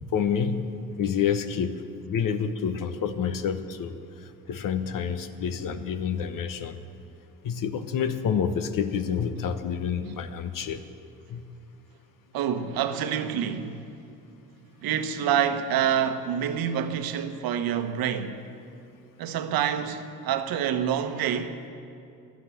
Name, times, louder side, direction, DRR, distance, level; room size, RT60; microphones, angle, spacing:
voice 1, 0.1-0.6 1.0-3.9 4.5-6.8 7.4-10.8 11.3-11.4, left 7 dB, 65° left, 1.0 m, -28 dB
voice 2, 12.3-13.9 14.8-18.4 19.2-21.6, right 8 dB, 75° right, 1.1 m, -27 dB
13.5 x 9.9 x 9.0 m
supercardioid pair, 70°, 35 cm